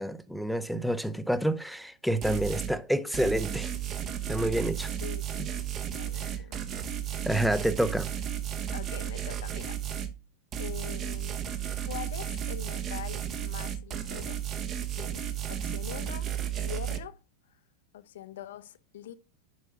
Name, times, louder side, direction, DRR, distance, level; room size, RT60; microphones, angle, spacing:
voice 1, 0.0-3.7 4.3-4.9 7.3-8.1 15.6-15.7, right 1 dB, ahead, 0.6 m, -28 dB
sound 1, 2.2-2.7 3.1-10.1 10.5-17.0, right 10 dB, 30° right, 0.9 m, -34 dB
voice 2, 5.0-5.6 5.9-6.6 8.7-9.8 10.6-11.5 11.9-14.4 14.9-16.3 16.6-17.2 17.9-19.1, left 11 dB, 60° left, 0.7 m, -43 dB
6.2 x 5.6 x 5.3 m
figure-of-eight pair, 90°, 0 cm